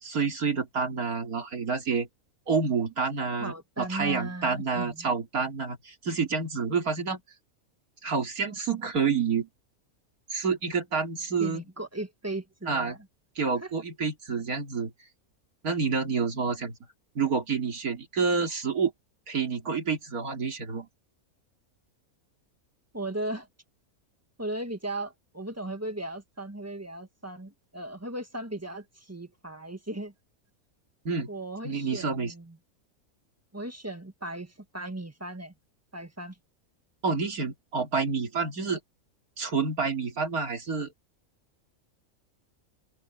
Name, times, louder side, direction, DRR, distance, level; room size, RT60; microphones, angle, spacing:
voice 1, 0.0-2.1 2.5-7.2 8.0-9.5 10.3-11.6 12.7-12.9 13.4-14.9 15.6-16.8 17.1-18.9 19.3-20.9 31.0-31.3 31.6-32.3 37.0-38.8 39.4-40.9, right 5 dB, 85° right, 3.1 m, -28 dB
voice 2, 3.4-5.1 11.4-13.0 13.6-13.7 22.9-23.5 24.4-30.1 31.3-32.6 33.5-35.5 35.9-36.4, right 1 dB, 10° right, 1.5 m, -37 dB
open air
omnidirectional pair, 1.5 m